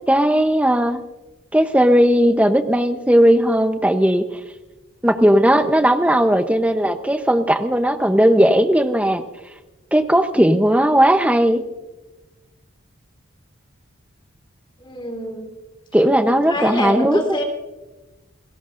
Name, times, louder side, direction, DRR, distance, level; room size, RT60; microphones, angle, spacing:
voice 1, 0.1-1.0 1.5-4.2 5.0-9.2 9.9-11.6 15.9-17.4, equal, 5° right, 8 dB, 0.8 m, -16 dB
voice 2, 14.8-15.5 16.2-17.4, equal, 25° left, 2 dB, 3.1 m, -26 dB
29.0 x 17.0 x 2.6 m, 1.1 s
head